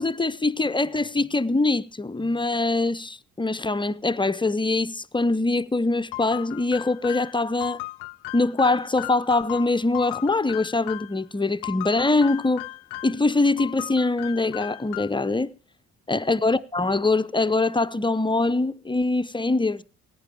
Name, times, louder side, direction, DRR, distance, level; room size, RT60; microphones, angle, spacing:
voice 1, 0.0-7.8 8.3-12.7 13.0-15.5 16.1-19.8, left 2 dB, 15° left, 0.5 m, -23 dB
sound 1, 6.1-11.2 11.6-13.2 13.6-15.3, left 21 dB, 75° left, 0.5 m, -37 dB
16.5 x 9.2 x 4.6 m
hypercardioid pair, 50°, 39 cm